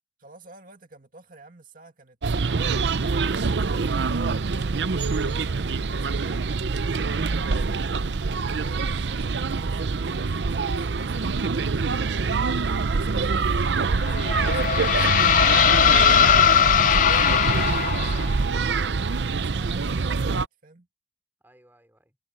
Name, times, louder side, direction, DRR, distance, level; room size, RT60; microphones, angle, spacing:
voice 1, 0.2-2.9 3.4-6.6 7.3-11.8 12.8-16.0 16.3-17.9 19.3-20.9, right 3 dB, 50° right, 2.3 m, -50 dB
sound 1, 2.2-20.5, right 4 dB, 75° right, 0.6 m, -25 dB
sound 2, 14.0-18.4, left 9 dB, 45° left, 0.3 m, -19 dB
voice 2, 21.4-22.2, right 1 dB, 10° right, 3.7 m, -53 dB
head